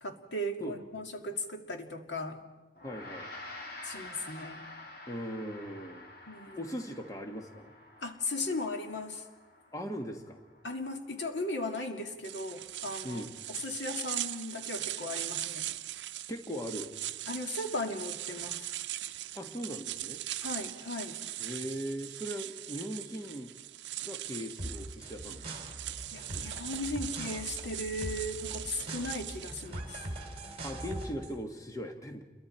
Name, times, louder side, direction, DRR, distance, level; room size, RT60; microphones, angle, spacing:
voice 1, 0.0-2.4 3.8-4.6 6.3-6.6 8.0-9.2 10.6-13.2 13.5-15.7 17.3-18.7 20.4-21.2 26.1-30.1, left 2 dB, 80° left, 4 dB, 2.1 m, -37 dB
Gong, 2.8-12.3, left 2 dB, 55° left, 2.7 m, -49 dB
voice 2, 2.8-3.3 5.1-6.1 6.5-7.7 9.7-10.4 13.0-13.3 16.3-16.9 19.3-20.2 21.4-23.5 24.0-25.5 30.6-32.2, equal, 20° left, 4 dB, 1.4 m, -39 dB
sound 1, 12.2-29.7, right 14 dB, 75° right, 0.6 m, -40 dB
sound 2, 24.6-31.4, right 1 dB, 35° right, 2.6 m, -42 dB
29.0 x 22.5 x 4.4 m, 1.2 s
head